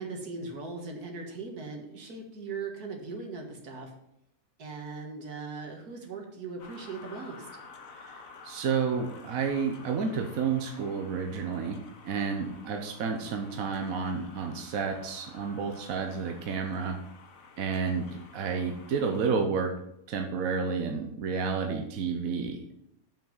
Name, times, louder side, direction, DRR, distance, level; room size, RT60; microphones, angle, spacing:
voice 1, 0.0-3.9 4.6-7.5, right 4 dB, 85° right, 2 dB, 2.2 m, -39 dB
sound 1, 6.6-19.4, left 4 dB, 65° left, 1.5 m, -51 dB
voice 2, 8.0-17.0 17.6-19.8 20.1-22.7, right 5 dB, 65° right, 3 dB, 1.3 m, -31 dB
7.3 x 6.1 x 7.2 m, 0.78 s
omnidirectional pair, 1.6 m